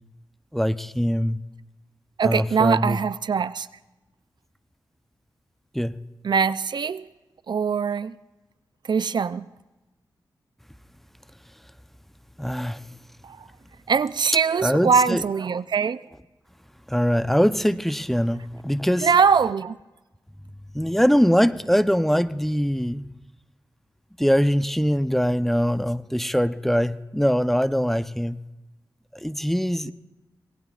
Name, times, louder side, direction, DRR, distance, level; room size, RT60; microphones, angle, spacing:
voice 1, 0.5-1.4 2.2-3.0 5.7-5.9 12.4-12.8 14.6-15.2 16.9-19.1 20.7-23.1 24.2-28.4 29.1-29.9, equal, 5° left, 0.7 m, -22 dB
voice 2, 2.2-3.7 6.2-7.1 7.5-8.2 8.8-9.5 13.2-13.5 13.9-16.0 19.0-19.8, right 6 dB, 65° right, 0.5 m, -22 dB
26.0 x 19.5 x 2.4 m
cardioid pair, 55°, 8 cm